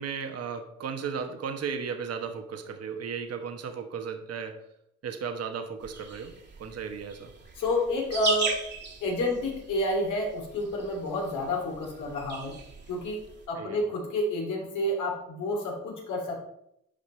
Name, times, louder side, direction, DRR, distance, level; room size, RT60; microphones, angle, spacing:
voice 1, 0.0-4.6 5.0-6.3 6.6-7.3 13.6-13.8, right 6 dB, 55° right, 6 dB, 1.2 m, -35 dB
sound 1, 5.8-13.5, right 4 dB, 35° right, 1.7 m, -38 dB
voice 2, 7.5-8.6 9.0-12.5 12.9-13.2 13.5-16.4, left 1 dB, 75° left, 0 dB, 2.9 m, -29 dB
10.5 x 5.3 x 4.4 m, 0.77 s
cardioid pair, 90°, 30 cm